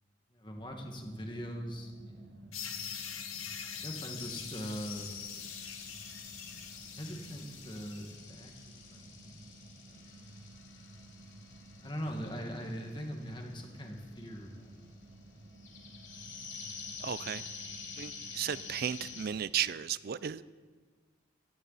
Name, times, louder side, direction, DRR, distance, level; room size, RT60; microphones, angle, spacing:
voice 1, 0.3-2.6 3.7-5.1 6.7-9.6 9.9-10.1 11.8-14.8, equal, 25° left, 2 dB, 1.7 m, -42 dB
sound 1, 0.6-19.5, right 2 dB, 65° right, 1.8 m, -54 dB
sound 2, 2.5-8.1, left 8 dB, 90° left, 1.6 m, -44 dB
sound 3, 4.2-19.3, left 5 dB, 60° left, 2.9 m, -48 dB
voice 2, 17.0-17.4 18.0-20.5, right 9 dB, 45° right, 18 dB, 0.3 m, -35 dB
16.5 x 13.5 x 4.1 m, 1.4 s
head